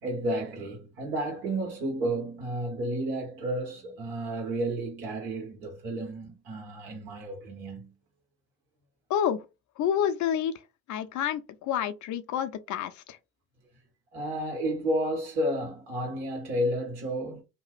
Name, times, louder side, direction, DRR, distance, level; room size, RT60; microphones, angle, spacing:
voice 1, 0.0-7.9 14.1-17.4, right 1 dB, 85° right, 1.5 m, -31 dB
voice 2, 9.8-10.5 10.9-13.2, left 9 dB, 60° left, 0.6 m, -28 dB
2.9 x 2.2 x 3.1 m
hypercardioid pair, 55°, 33 cm